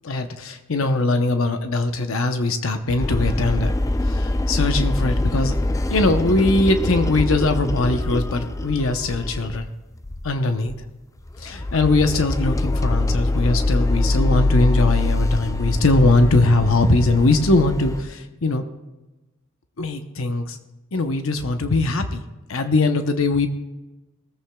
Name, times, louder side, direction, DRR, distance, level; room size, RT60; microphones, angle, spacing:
voice 1, 0.0-3.7 4.0-5.6 5.9-9.7 10.2-10.7 11.4-18.6 19.8-20.6 20.9-23.5, left 2 dB, 75° left, 6 dB, 0.9 m, -21 dB
sound 1, 3.0-9.7 10.0-10.3 10.7-10.8 11.3-18.0, left 2 dB, 15° left, 0.4 m, -23 dB
19.0 x 14.5 x 2.3 m, 1.1 s
head